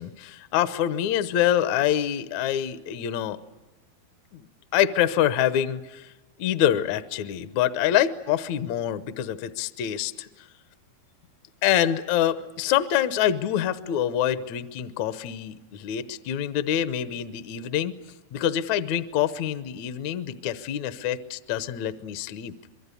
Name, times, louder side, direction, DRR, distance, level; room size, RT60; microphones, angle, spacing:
voice 1, 0.0-3.4 4.3-4.5 4.7-6.1 6.4-10.3 11.6-18.0 18.3-22.5, left 11 dB, 70° left, 13 dB, 1.8 m, -26 dB
25.0 x 23.5 x 8.3 m, 1.1 s
omnidirectional pair, 4.3 m